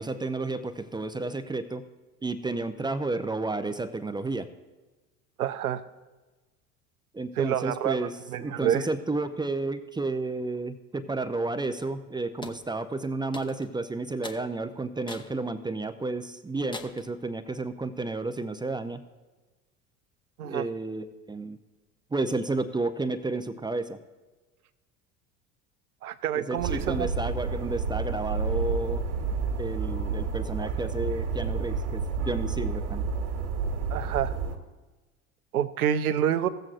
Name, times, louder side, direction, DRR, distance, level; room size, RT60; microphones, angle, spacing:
voice 1, 0.0-1.8 2.2-4.5 7.1-8.1 8.4-19.0 20.4-21.6 22.1-24.0 26.4-29.0 29.6-33.0, right 3 dB, 10° right, 9 dB, 0.6 m, -31 dB
voice 2, 5.4-5.8 7.4-8.9 20.4-20.6 26.0-27.1 30.6-30.7 33.9-34.3 35.5-36.5, right 10 dB, 80° right, 11 dB, 0.7 m, -28 dB
sound 1, 12.4-12.6 13.3-13.7 14.2-14.4 15.1-15.3 15.8-15.9 16.7-17.1, left 2 dB, 10° left, 0.8 m, -41 dB
sound 2, 26.6-34.6, right 4 dB, 60° right, 1.6 m, -30 dB
16.5 x 7.7 x 2.5 m, 1.2 s
figure-of-eight pair, 65°, 43 cm